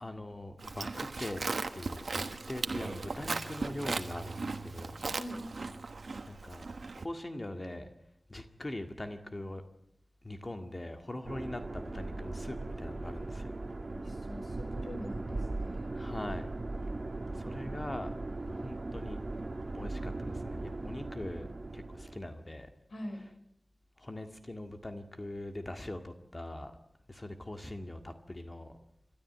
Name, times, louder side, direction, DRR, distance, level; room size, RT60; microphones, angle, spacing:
voice 1, 0.0-1.4 1.7-5.0 6.3-6.7 7.0-7.9 8.3-9.6 10.2-13.6 15.9-16.5 17.3-18.1 18.5-19.2 19.7-21.5 21.7-22.7 24.0-26.7 27.1-28.8, left 1 dB, 35° left, 6 dB, 1.9 m, -42 dB
Livestock farm animals working animals, 0.6-7.1, right 3 dB, 85° right, 1.2 m, -37 dB
voice 2, 5.1-5.5 13.8-15.9 22.9-23.2, equal, 85° left, 6 dB, 5.5 m, -44 dB
sound 1, 11.2-22.2, right 2 dB, 50° right, 1.6 m, -38 dB
27.0 x 13.0 x 9.3 m, 0.75 s
wide cardioid pair, 75°, 0 cm